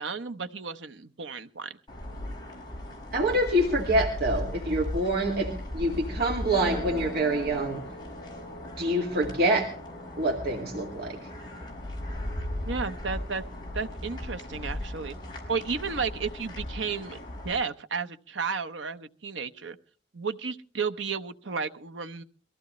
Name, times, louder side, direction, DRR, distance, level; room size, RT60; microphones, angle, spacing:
voice 1, 0.0-1.7 12.6-13.4 13.7-15.2 15.5-17.2 17.4-19.8 20.1-22.2, right 5 dB, 80° right, 9 dB, 0.9 m, -33 dB
sound 1, 1.9-17.5, left 1 dB, 25° left, 5.2 m, -37 dB
voice 2, 3.1-7.8 8.8-9.7 10.2-11.2, right 1 dB, 55° right, -1 dB, 2.3 m, -26 dB
22.5 x 15.0 x 3.2 m, 0.40 s
head